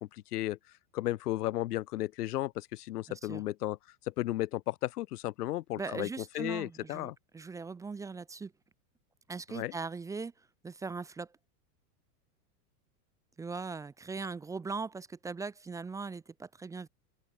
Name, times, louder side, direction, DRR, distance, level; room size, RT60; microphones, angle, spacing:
voice 1, 0.1-0.6 0.9-3.8 4.0-6.1 6.3-7.1 9.5-9.7, left 15 dB, 80° left, 1.4 m, -34 dB
voice 2, 3.1-3.4 5.8-8.5 9.3-10.3 10.6-11.3 13.4-16.9, right 4 dB, 5° right, 1.0 m, -40 dB
open air
supercardioid pair, 170°, 46 cm